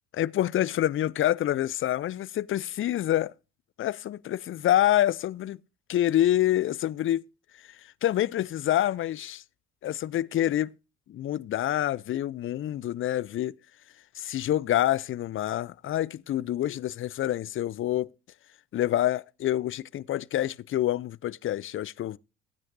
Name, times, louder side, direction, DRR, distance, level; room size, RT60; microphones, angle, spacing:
voice 1, 0.1-3.3 3.8-5.6 5.9-7.2 7.6-9.4 9.8-10.7 11.1-13.6 14.1-18.1 18.7-22.2, left 12 dB, 40° left, 0.4 m, -27 dB
16.0 x 9.0 x 2.6 m
hypercardioid pair, 70°, 34 cm